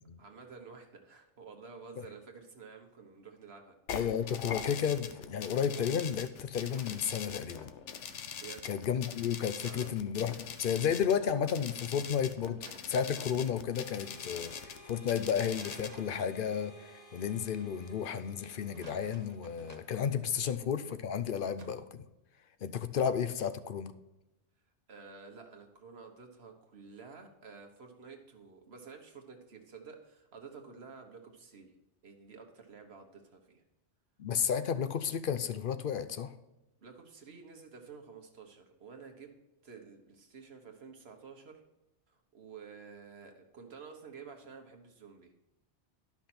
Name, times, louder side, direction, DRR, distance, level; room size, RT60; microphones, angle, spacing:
voice 1, 0.2-3.8 8.4-8.6 9.6-9.9 20.4-20.6 24.9-31.7 32.0-33.6 36.8-39.3 39.6-41.6 42.1-45.3, right 5 dB, 65° right, 4 dB, 1.4 m, -51 dB
sound 1, 3.9-15.9, left 7 dB, 90° left, 1.0 m, -43 dB
voice 2, 3.9-7.7 8.6-10.3 10.6-12.6 12.9-22.0 22.6-23.9 34.2-36.3, left 8 dB, 55° left, 12 dB, 0.7 m, -32 dB
sound 2, 6.7-7.7 9.6-10.2 12.6-13.1 15.6-16.3 18.6-20.6 21.6-21.9, right 4 dB, 40° right, 0.8 m, -56 dB
Harmonica, 13.7-20.0, right 1 dB, 30° left, 1.5 m, -55 dB
12.0 x 5.9 x 4.3 m, 0.95 s
omnidirectional pair, 1.2 m